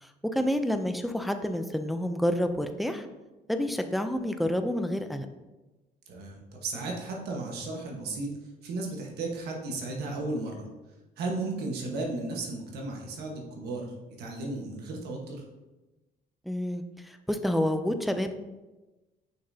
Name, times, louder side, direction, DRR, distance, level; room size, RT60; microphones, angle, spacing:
voice 1, 0.0-3.1 3.5-5.3 16.5-18.3, equal, ahead, 7 dB, 0.4 m, -29 dB
voice 2, 6.1-8.3 8.6-10.7 11.2-15.4, right 2 dB, 70° right, -1 dB, 1.3 m, -34 dB
6.4 x 5.9 x 2.7 m, 1.1 s
cardioid pair, 110°, 17 cm